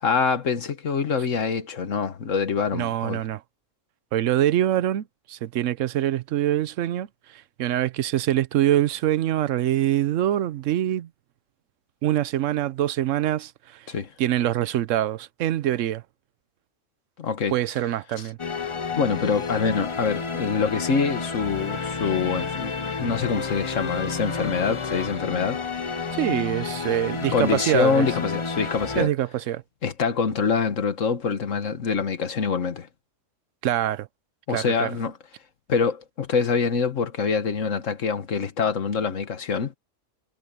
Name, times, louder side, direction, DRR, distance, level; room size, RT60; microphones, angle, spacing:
voice 1, 0.0-3.2 13.9-14.1 17.2-17.6 19.0-22.7 23.0-25.6 27.3-29.1 29.8-32.9 34.5-35.1 35.7-39.7, left 5 dB, 80° left, 1.7 m, -25 dB
voice 2, 2.7-3.4 4.1-7.1 7.6-11.1 12.0-13.8 14.2-16.0 17.5-18.4 26.1-28.1 29.0-29.6 33.6-34.1 34.5-35.0, right 12 dB, 80° right, 1.0 m, -24 dB
sound 1, 18.4-29.0, left 5 dB, 30° left, 0.7 m, -30 dB
omnidirectional pair, 1.3 m